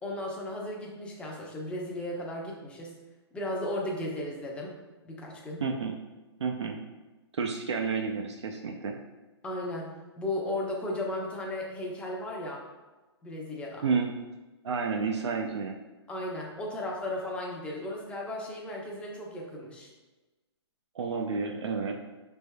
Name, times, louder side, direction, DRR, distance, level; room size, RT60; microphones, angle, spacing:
voice 1, 0.0-3.0 3.3-4.8 5.0-5.6 9.4-12.6 13.2-13.8 16.1-19.9, left 1 dB, 5° left, -2 dB, 0.6 m, -35 dB
voice 2, 5.6-6.0 6.4-6.8 7.3-9.0 13.8-14.1 14.6-15.8 20.9-22.0, right 5 dB, 85° right, 2 dB, 0.5 m, -30 dB
5.1 x 3.4 x 2.2 m, 1.2 s
hypercardioid pair, 140°, 14 cm